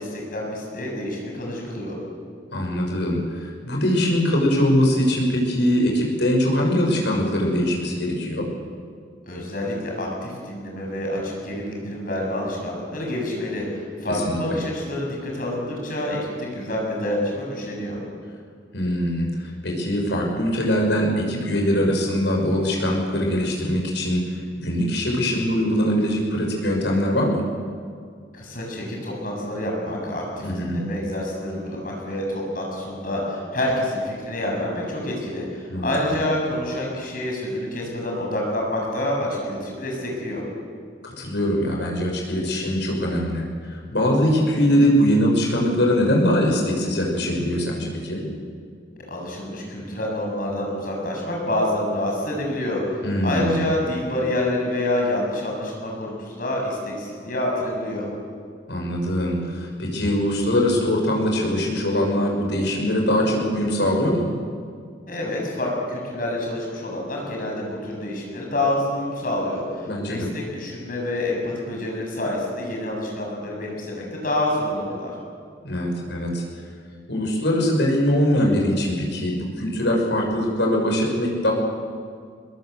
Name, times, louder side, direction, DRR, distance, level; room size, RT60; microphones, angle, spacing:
voice 1, 0.0-2.0 9.3-18.0 28.3-40.4 49.1-58.1 65.1-75.1, left 1 dB, 45° left, -1 dB, 7.3 m, -27 dB
voice 2, 2.5-8.5 14.3-14.6 18.7-24.2 24.6-27.4 30.4-30.8 35.7-35.9 41.2-43.4 43.7-48.3 53.0-53.5 58.7-64.3 69.8-70.3 75.6-76.4 77.1-81.5, equal, 70° left, 0 dB, 6.3 m, -22 dB
22.5 x 21.5 x 8.1 m, 2.1 s
head